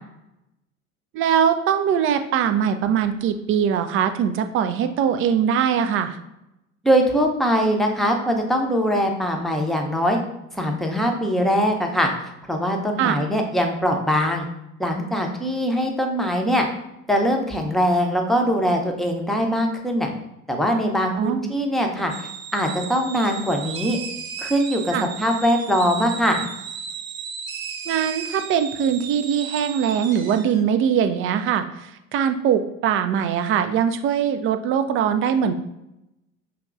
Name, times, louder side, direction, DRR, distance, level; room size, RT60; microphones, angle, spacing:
voice 1, 1.1-6.2 13.0-13.2 21.1-21.5 24.9-25.1 27.9-35.5, right 8 dB, 35° right, 8 dB, 0.4 m, -22 dB
voice 2, 6.8-10.2 10.5-12.1 12.5-14.5 14.8-16.7 17.1-20.1 20.5-24.0 24.4-26.5, equal, ahead, 2 dB, 0.7 m, -22 dB
sound 1, 22.1-30.6, right 7 dB, 85° right, 0.6 m, -35 dB
5.8 x 2.9 x 2.5 m, 0.87 s
figure-of-eight pair, 70°, 40 cm